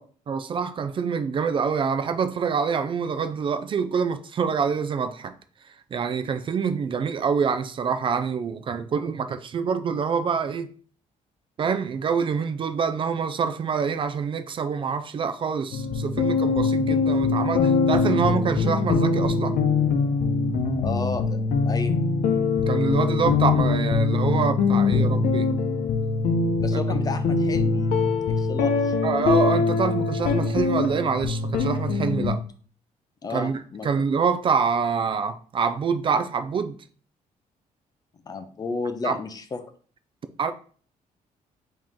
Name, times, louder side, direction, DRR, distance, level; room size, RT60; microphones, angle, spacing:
voice 1, 0.0-5.3 5.6-10.7 11.6-19.6 22.7-25.5 26.7-26.8 29.0-32.4 33.3-36.8 39.0-39.2 40.4-40.5, right 6 dB, 40° right, 0.3 m, -26 dB
sound 1, 15.7-32.4, left 4 dB, 85° left, 0.7 m, -23 dB
voice 2, 20.8-22.0 26.6-27.9 28.3-28.9 32.2-32.4 33.2-34.1 38.3-39.6, left 4 dB, 25° left, 0.5 m, -32 dB
5.0 x 2.9 x 3.6 m
cardioid pair, 150°, 14 cm